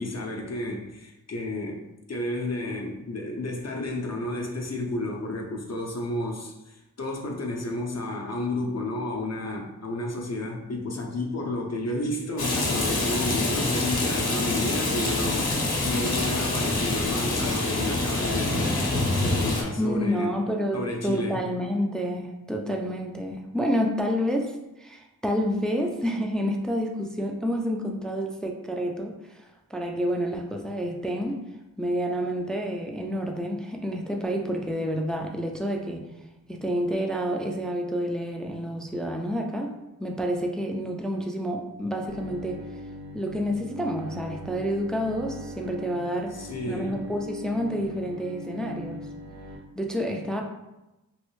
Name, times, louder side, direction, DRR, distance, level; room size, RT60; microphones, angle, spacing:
voice 1, 0.0-18.7 19.2-20.3 20.7-21.4 46.3-47.0, left 2 dB, 45° left, 0 dB, 0.6 m, -31 dB
Rain, 12.4-19.6, left 2 dB, 85° left, 0.8 m, -26 dB
voice 2, 19.8-31.4 31.8-36.1 36.5-39.7 40.0-42.6 43.1-46.3 46.7-49.1 49.7-50.4, equal, ahead, 2 dB, 0.4 m, -29 dB
Bowed string instrument, 42.1-49.6, equal, 80° right, 0.5 m, -41 dB
3.1 x 2.6 x 3.0 m, 0.97 s
wide cardioid pair, 55°, 36 cm